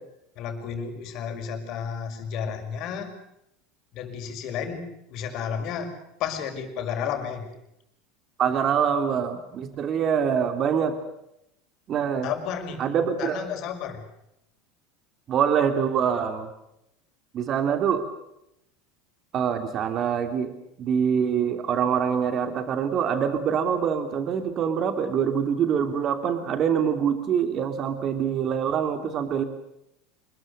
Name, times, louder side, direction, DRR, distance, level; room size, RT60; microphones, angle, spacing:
voice 1, 0.4-3.1 3.9-5.9 6.2-7.5 12.2-14.0, left 7 dB, 55° left, 6 dB, 5.9 m, -32 dB
voice 2, 8.4-11.0 11.9-12.3 12.8-13.4 15.3-16.5 17.3-18.0 19.3-20.5 20.8-29.4, right 7 dB, 45° right, 8 dB, 2.8 m, -25 dB
27.0 x 22.0 x 6.6 m, 0.81 s
hypercardioid pair, 80°, 0 cm